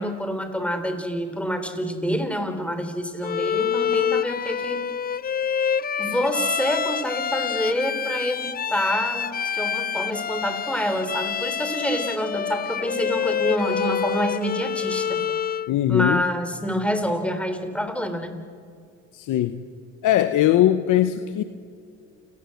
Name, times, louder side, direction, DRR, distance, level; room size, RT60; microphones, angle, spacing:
voice 1, 0.0-4.8 6.0-15.3 15.9-18.3, equal, 5° left, 7 dB, 4.1 m, -27 dB
Bowed string instrument, 3.2-15.7, left 7 dB, 30° left, 0.5 m, -27 dB
voice 2, 15.7-16.2 19.1-19.6 20.0-21.4, left 12 dB, 80° left, 10 dB, 1.1 m, -20 dB
29.0 x 19.0 x 8.0 m, 2.3 s
cardioid pair, 90°, 30 cm